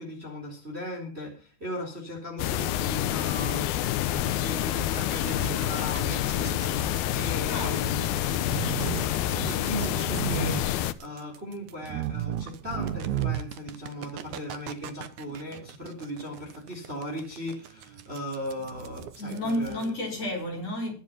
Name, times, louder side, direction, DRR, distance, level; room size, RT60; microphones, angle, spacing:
voice 1, 0.0-3.6 4.0-8.9 9.2-19.9, equal, 15° right, 3.5 m, -38 dB
sound 1, 2.4-10.9, left 13 dB, 75° left, 2.5 m, -28 dB
sound 2, 4.1-19.9, right 11 dB, 70° right, 1.8 m, -36 dB
voice 2, 7.5-7.9 19.2-20.9, left 1 dB, 40° left, 4.8 m, -31 dB
22.5 x 7.5 x 5.7 m
omnidirectional pair, 4.7 m